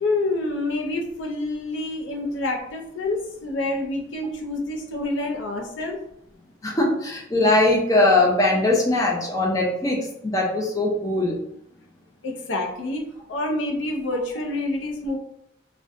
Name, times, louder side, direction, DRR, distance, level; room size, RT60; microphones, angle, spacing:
voice 1, 0.0-6.0 12.2-15.2, left 2 dB, 80° left, 2 dB, 0.5 m, -27 dB
voice 2, 6.6-11.4, left 2 dB, 20° left, -2 dB, 0.4 m, -21 dB
2.6 x 2.1 x 2.4 m, 0.77 s
head